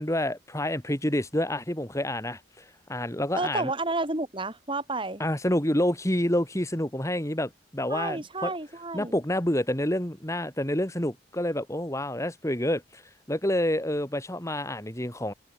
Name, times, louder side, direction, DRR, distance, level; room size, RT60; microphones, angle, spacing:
voice 1, 0.0-3.7 5.2-8.5 8.9-13.0 13.3-15.3, left 1 dB, 15° left, 2.9 m, -28 dB
voice 2, 3.4-5.2 7.9-9.1, right 2 dB, 25° right, 4.6 m, -31 dB
head